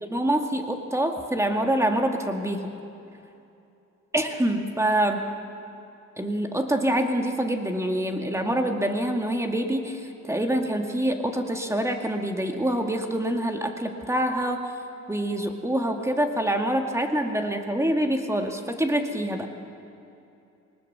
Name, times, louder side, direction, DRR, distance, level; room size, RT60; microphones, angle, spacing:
voice 1, 0.0-2.7 4.1-5.3 6.2-14.6 15.1-19.5, right 1 dB, 10° right, 4 dB, 2.1 m, -26 dB
21.0 x 19.0 x 6.9 m, 2.7 s
cardioid pair, 90°, 30 cm